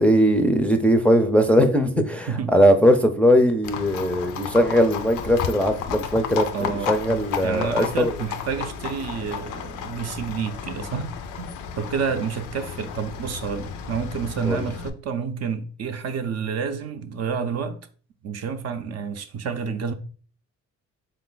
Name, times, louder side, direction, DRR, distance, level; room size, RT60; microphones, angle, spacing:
voice 1, 0.0-8.1 14.5-14.6, equal, 5° left, 0.4 m, -19 dB
voice 2, 2.0-2.5 6.5-11.1 11.4-17.8 18.2-19.9, right 6 dB, 55° right, 0.5 m, -29 dB
Livestock farm animals working animals, 3.6-14.9, left 7 dB, 85° left, 0.5 m, -33 dB
3.7 x 2.5 x 3.8 m
cardioid pair, 90°, 30 cm